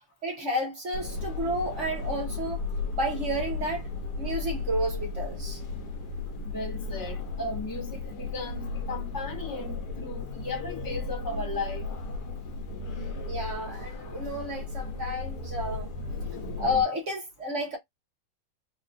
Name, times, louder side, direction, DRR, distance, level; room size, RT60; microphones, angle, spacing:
voice 1, 0.2-2.6 2.9-3.9 4.2-5.6 13.3-15.9 16.6-17.8, equal, 45° right, 1.2 m, -31 dB
sound 1, 0.9-16.8, left 3 dB, 60° left, 1.5 m, -35 dB
voice 2, 6.4-11.9, left 2 dB, 15° left, 0.7 m, -36 dB
3.9 x 2.5 x 2.5 m
omnidirectional pair, 2.2 m